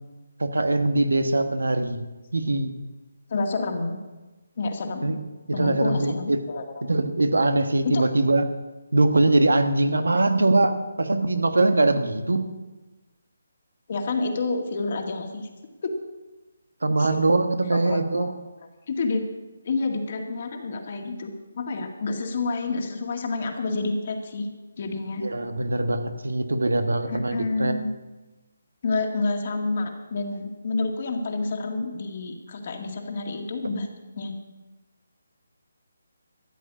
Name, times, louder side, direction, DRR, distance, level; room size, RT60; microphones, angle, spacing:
voice 1, 0.4-2.0 2.3-2.7 5.0-5.2 5.6-6.4 6.9-8.4 8.9-12.5 16.8-18.3 25.2-27.8, right 2 dB, 85° right, 8 dB, 1.3 m, -22 dB
voice 2, 3.3-4.0 4.6-5.1 5.5-6.8 7.8-8.0 13.9-15.5 15.8-15.9 17.0-17.2 17.7-18.3 18.9-19.2 19.6-24.5 24.8-25.2 27.1-27.9 28.8-33.9 34.1-34.3, left 3 dB, 45° left, 3 dB, 2.0 m, -29 dB
13.5 x 7.7 x 8.5 m, 1.2 s
figure-of-eight pair, 155°, 0 cm